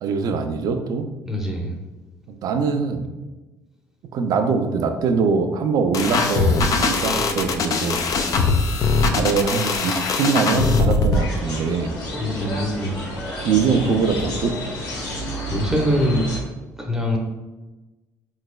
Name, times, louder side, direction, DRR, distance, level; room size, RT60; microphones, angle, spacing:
voice 1, 0.0-1.1 2.3-3.1 4.1-8.0 9.1-12.0 13.4-14.5, right 5 dB, 60° right, 7 dB, 0.4 m, -22 dB
voice 2, 1.2-1.7 12.2-13.0 15.5-16.2 16.8-17.2, left 1 dB, 5° right, 0 dB, 0.7 m, -23 dB
sound 1, 5.9-11.2, left 4 dB, 55° left, 0.4 m, -21 dB
sound 2, 11.1-16.4, equal, 80° left, 1.1 m, -30 dB
3.9 x 3.2 x 2.2 m, 1.1 s
supercardioid pair, 80°, 7 cm